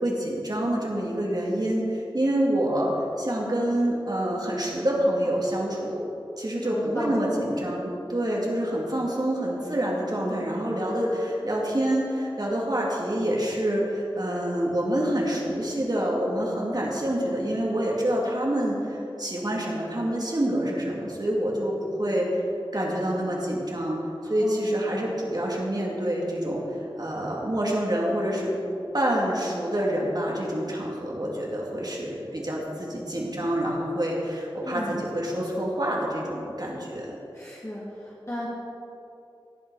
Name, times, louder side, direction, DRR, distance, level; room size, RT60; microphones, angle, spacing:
voice 1, 0.0-6.0 6.4-22.4 22.7-24.0 24.2-28.6 28.9-37.2, right 1 dB, 50° right, -3 dB, 2.5 m, -27 dB
voice 2, 6.6-7.5 24.4-24.8 34.6-35.0 37.3-38.5, left 1 dB, 35° left, -8 dB, 2.4 m, -35 dB
17.0 x 7.4 x 4.8 m, 2.9 s
wide cardioid pair, 50°, 9 cm